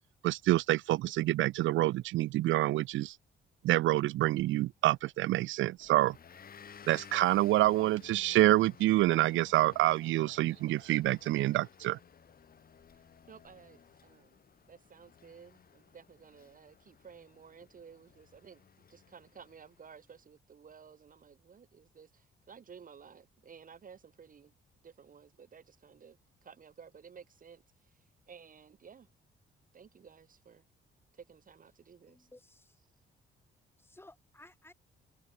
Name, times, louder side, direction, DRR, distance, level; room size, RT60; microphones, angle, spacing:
voice 1, 0.2-3.2 3.6-6.2 6.9-12.0, right 16 dB, 75° right, 0.5 m, -27 dB
Motor vehicle (road) / Engine, 5.8-20.0, left 7 dB, 50° left, 2.9 m, -57 dB
voice 2, 13.3-14.4 14.7-24.5 24.8-26.2 26.4-27.6 28.3-29.1 29.7-30.6 31.2-32.2, right 6 dB, 45° right, 2.0 m, -54 dB
voice 3, 32.1-32.8 33.8-34.7, left 2 dB, 10° left, 4.5 m, -57 dB
cardioid pair, 90°, 20 cm